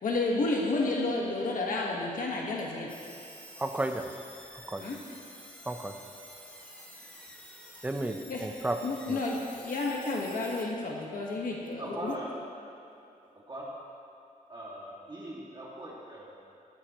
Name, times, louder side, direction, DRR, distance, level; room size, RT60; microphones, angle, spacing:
voice 1, 0.0-2.9 4.8-4.9 8.3-8.4 8.8-12.1, left 2 dB, 70° left, -2 dB, 1.4 m, -31 dB
sound 1, 2.9-10.6, equal, 10° left, 1.7 m, -49 dB
voice 2, 3.6-4.1 4.6-4.8 5.6-5.9 7.8-8.8 9.1-9.2, right 1 dB, 10° right, 5 dB, 0.6 m, -32 dB
voice 3, 11.8-12.3 13.5-13.7 14.5-16.5, right 1 dB, 30° right, -5 dB, 2.2 m, -40 dB
16.5 x 13.5 x 3.0 m, 2.7 s
wide cardioid pair, 165°, 14 cm